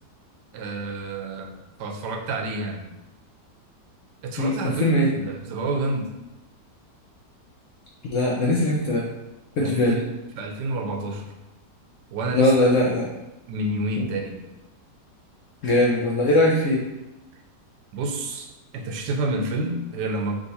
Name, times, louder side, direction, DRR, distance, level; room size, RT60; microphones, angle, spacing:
voice 1, 0.5-1.5 1.8-2.9 4.2-6.1 9.6-11.3 12.1-12.7 13.5-14.5 17.9-20.4, right 2 dB, 85° right, 3 dB, 1.2 m, -29 dB
voice 2, 4.4-5.1 8.1-9.1 9.6-10.0 12.3-13.1 14.0-14.1 15.6-16.8, left 1 dB, 70° left, -3 dB, 0.7 m, -20 dB
3.7 x 2.9 x 4.0 m, 0.99 s
omnidirectional pair, 1.8 m